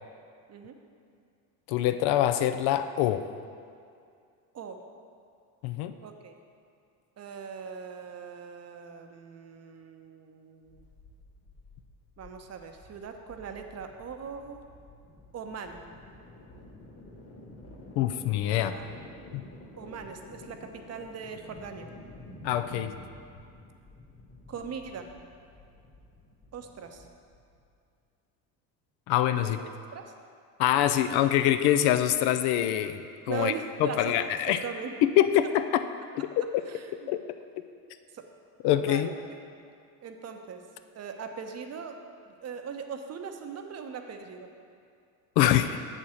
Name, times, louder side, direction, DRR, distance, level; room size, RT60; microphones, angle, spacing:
voice 1, 1.7-3.2 5.6-5.9 18.0-18.7 19.3-19.4 22.4-22.9 29.1-29.6 30.6-33.0 33.3-33.5 33.8-34.6 35.0-35.8 36.1-36.4 37.1-37.2 38.6-39.1 45.4-45.8, left 12 dB, 60° left, 10 dB, 0.5 m, -24 dB
voice 2, 6.0-6.3 7.2-10.8 12.2-14.6 15.3-15.8 18.7-18.9 19.8-21.9 24.5-25.1 26.5-27.1 29.4-30.1 33.3-34.2 34.5-34.9 36.7-37.1 38.1-38.3 38.8-39.1 40.0-40.6 40.9-42.0 42.4-44.5, right 6 dB, 35° right, 5 dB, 0.7 m, -40 dB
sound 1, 10.6-27.7, left 2 dB, 30° left, 1.6 m, -50 dB
7.2 x 4.3 x 6.3 m, 2.4 s
hypercardioid pair, 75°, 46 cm